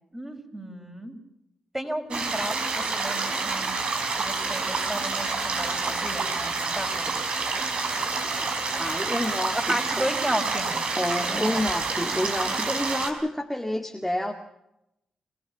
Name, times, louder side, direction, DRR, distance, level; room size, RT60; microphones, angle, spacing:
voice 1, 0.1-1.2 1.7-3.9 4.2-7.1 9.5-11.6, right 1 dB, 15° right, 4 dB, 5.1 m, -33 dB
sound 1, 2.1-13.1, right 4 dB, 60° right, 4.4 m, -28 dB
voice 2, 8.8-10.1 11.0-14.3, left 1 dB, 5° left, 1 dB, 2.1 m, -29 dB
26.0 x 16.0 x 7.3 m, 0.86 s
supercardioid pair, 50°, 2 cm